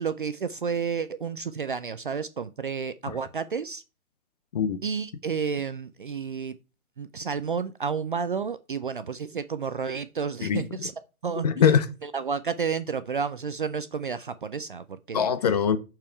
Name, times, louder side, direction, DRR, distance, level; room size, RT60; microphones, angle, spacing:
voice 1, 0.0-3.8 4.8-6.6 7.0-10.9 11.2-11.5 12.1-15.3, right 6 dB, 40° right, 0.4 m, -31 dB
voice 2, 10.4-10.9 11.4-11.9 15.1-15.8, left 7 dB, 30° left, 0.7 m, -23 dB
6.8 x 5.9 x 4.5 m
hypercardioid pair, 155°, 42 cm